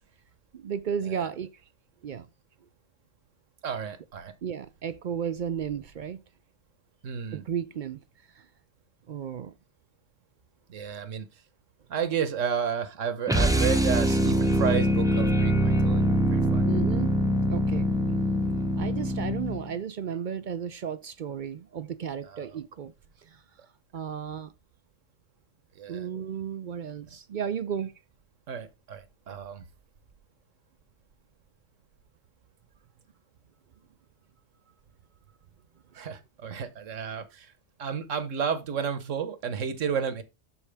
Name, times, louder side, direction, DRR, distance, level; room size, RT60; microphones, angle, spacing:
voice 1, 0.5-1.5 2.0-2.3 4.4-6.2 7.3-8.0 8.3-8.5 9.1-9.5 16.6-17.1 17.5-17.9 18.8-22.9 23.2-23.4 23.9-24.5 25.9-27.9, right 8 dB, 60° right, 0.5 m, -34 dB
voice 2, 3.6-4.3 7.0-7.4 10.7-11.3 11.9-16.7 22.3-22.5 25.8-26.1 28.5-29.6 35.9-37.5 37.8-40.2, right 7 dB, 80° right, 1.4 m, -32 dB
sound 1, 13.3-19.7, equal, 5° right, 0.5 m, -24 dB
12.5 x 4.5 x 3.4 m
omnidirectional pair, 1.3 m